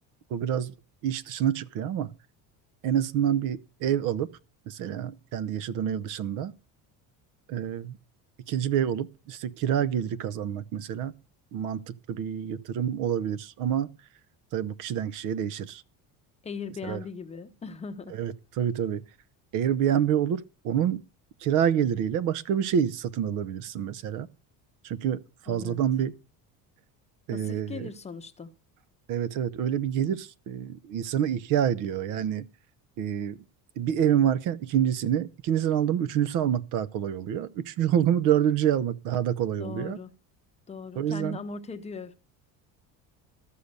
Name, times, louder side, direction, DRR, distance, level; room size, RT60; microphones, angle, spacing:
voice 1, 0.3-0.7 1.0-2.1 2.8-4.3 4.7-6.5 7.5-8.0 8.5-11.1 11.5-13.9 14.5-15.8 16.8-17.0 18.1-19.0 19.5-21.0 21.4-24.3 24.8-26.1 27.3-27.9 29.1-32.5 33.0-33.4 33.8-40.0 41.0-41.4, right 9 dB, 60° right, 0.8 m, -27 dB
voice 2, 16.4-18.1 25.5-25.8 27.3-28.5 39.6-40.1 40.7-42.1, left 5 dB, 20° left, 0.8 m, -39 dB
13.0 x 6.7 x 6.7 m
cardioid pair, 160°, 36 cm